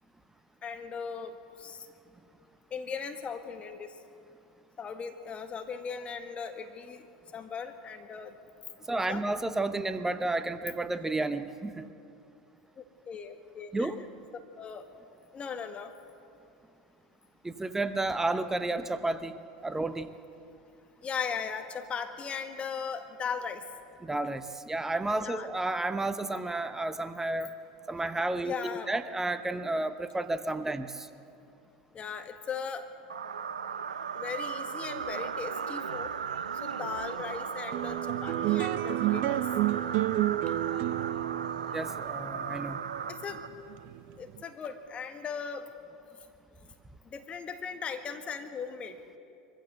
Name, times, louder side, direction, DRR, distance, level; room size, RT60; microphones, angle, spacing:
voice 1, 0.6-1.9 2.7-4.0 4.8-7.1 7.3-8.4 8.9-9.2 12.8-13.9 14.6-14.9 15.3-15.9 21.0-23.7 25.2-25.5 28.4-28.9 31.9-32.9 34.1-36.1 36.6-39.5 43.1-43.4 44.2-45.7 47.0-49.0, left 6 dB, 30° left, 7 dB, 1.8 m, -38 dB
voice 2, 8.9-11.9 13.7-14.0 17.4-20.1 24.0-27.5 27.9-31.1 41.7-42.8, right 2 dB, 10° right, 11 dB, 1.0 m, -31 dB
sound 1, 33.1-43.8, right 7 dB, 85° right, 0.7 m, -36 dB
sound 2, 37.7-44.4, right 15 dB, 50° right, 0.8 m, -31 dB
22.5 x 15.5 x 8.0 m, 2.6 s
hypercardioid pair, 85°, 4 cm